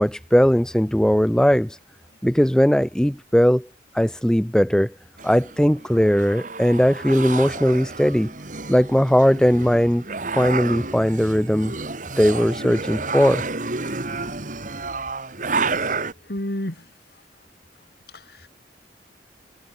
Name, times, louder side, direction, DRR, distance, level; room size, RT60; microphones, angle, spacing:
voice 1, 0.0-1.8 2.2-3.7 3.9-4.9 5.2-8.3 8.7-10.0 10.3-11.7 12.2-13.4, equal, 5° left, 0.5 m, -19 dB
sound 1, 5.2-16.1, right 3 dB, 45° right, 1.8 m, -30 dB
voice 2, 16.3-16.8 18.1-18.5, left 1 dB, 55° left, 3.2 m, -30 dB
head